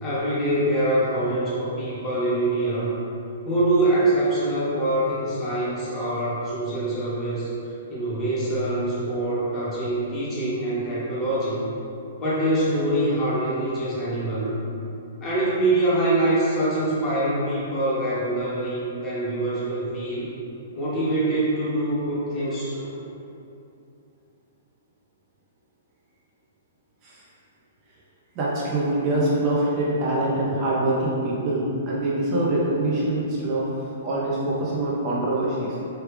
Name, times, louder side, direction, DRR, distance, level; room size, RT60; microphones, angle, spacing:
voice 1, 0.0-2.9 3.4-7.5 7.9-11.7 12.2-14.5 15.2-20.3 20.7-23.0, right 1 dB, 20° left, -8 dB, 0.8 m, -24 dB
voice 2, 28.4-33.7 34.0-35.7, right 1 dB, 30° right, -6 dB, 0.4 m, -24 dB
3.2 x 2.3 x 3.2 m, 2.7 s
hypercardioid pair, 160°, 0 cm